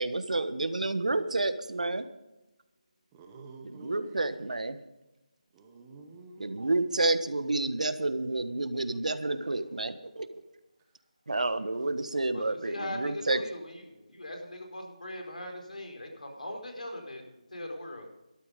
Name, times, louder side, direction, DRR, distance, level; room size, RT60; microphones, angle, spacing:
voice 1, 0.0-2.1 3.8-4.8 6.4-10.4 11.3-13.4, right 2 dB, 70° right, 11 dB, 1.3 m, -30 dB
voice 2, 3.0-4.2 5.5-7.3 10.8-11.0, right 3 dB, 10° right, 3 dB, 0.8 m, -50 dB
voice 3, 12.3-17.2 17.5-18.1, left 1 dB, 80° left, 3 dB, 4.7 m, -40 dB
13.0 x 12.5 x 5.2 m, 1.0 s
figure-of-eight pair, 175°, 4 cm